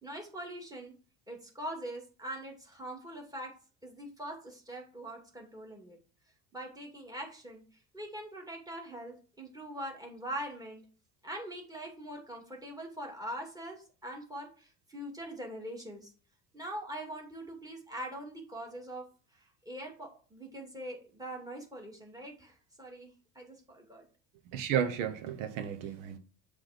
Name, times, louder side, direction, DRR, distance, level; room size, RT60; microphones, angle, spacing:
voice 1, 0.0-0.9 1.3-3.5 3.8-6.0 6.5-7.6 7.9-10.8 11.2-16.1 16.5-19.1 19.3-24.1, right 1 dB, 10° right, 2.4 m, -43 dB
voice 2, 24.5-26.2, right 8 dB, 85° right, 1.1 m, -32 dB
7.5 x 3.5 x 5.1 m
supercardioid pair, 105°, 36 cm